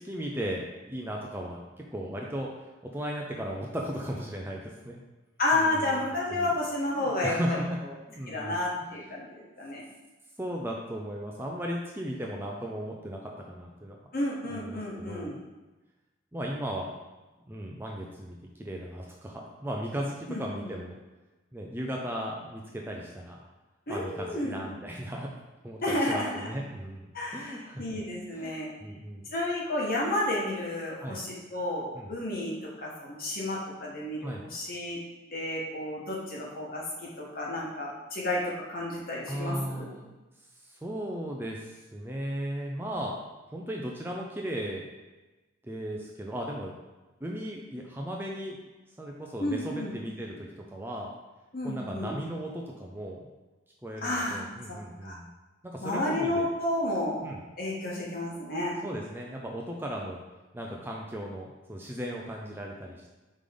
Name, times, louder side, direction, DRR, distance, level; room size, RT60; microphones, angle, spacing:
voice 1, 0.0-2.5 2.8-5.0 5.5-6.0 6.3-6.5 7.0-7.8 8.1-9.1 10.4-14.0 14.5-15.4 16.3-16.9 17.5-21.0 21.5-23.4 23.9-25.3 25.6-27.1 27.3-28.0 28.3-29.3 31.0-31.2 31.9-32.1 34.2-34.5 39.3-40.1 40.6-43.2 43.5-44.9 45.6-46.7 47.2-48.6 49.0-51.1 51.6-53.3 53.8-55.3 55.6-56.5 57.2-57.4 58.8-60.2 60.5-63.1, equal, 10° right, -1 dB, 0.5 m, -36 dB
voice 2, 5.4-7.6 8.3-9.8 14.1-15.4 20.3-20.7 23.9-24.6 25.8-26.5 27.1-28.7 29.3-35.0 35.3-39.9 49.4-49.9 51.5-52.1 54.0-54.4 54.7-55.2 55.8-57.2 57.6-58.8, left 1 dB, 45° left, -3 dB, 1.4 m, -31 dB
5.0 x 3.9 x 5.1 m, 1.1 s
head